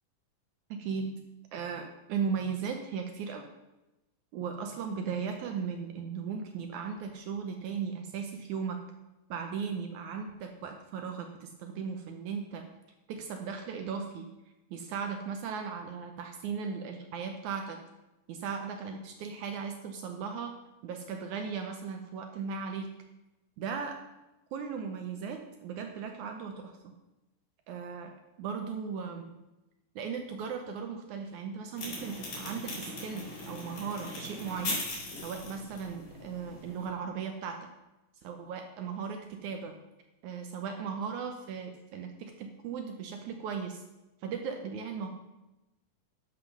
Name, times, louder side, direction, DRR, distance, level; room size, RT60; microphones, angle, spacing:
voice 1, 0.7-1.1 1.5-3.5 4.3-8.8 9.3-12.6 13.1-14.3 14.7-17.8 18.3-20.5 20.8-22.9 23.6-24.0 24.5-26.9 27.7-28.1 28.4-29.3 30.0-34.8 35.2-37.7 38.2-39.7 40.2-43.8 44.2-45.1, right 6 dB, 75° right, 4 dB, 2.0 m, -37 dB
sound 1, 31.8-36.9, left 2 dB, 75° left, 5.5 m, -39 dB
11.0 x 5.9 x 6.1 m, 0.98 s
omnidirectional pair, 3.9 m